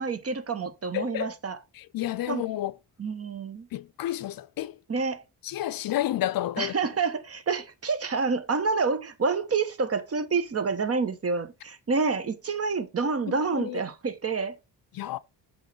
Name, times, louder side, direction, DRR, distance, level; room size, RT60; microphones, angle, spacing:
voice 1, 0.0-1.6 2.3-2.4 3.0-3.7 4.9-5.2 6.6-14.6, right 4 dB, 35° right, 1.0 m, -28 dB
voice 2, 0.9-1.3 1.7-2.7 3.7-4.8 5.4-6.8 13.3-13.8 14.9-15.2, left 13 dB, 60° left, 0.5 m, -30 dB
8.2 x 3.2 x 5.4 m
supercardioid pair, 65°, 40 cm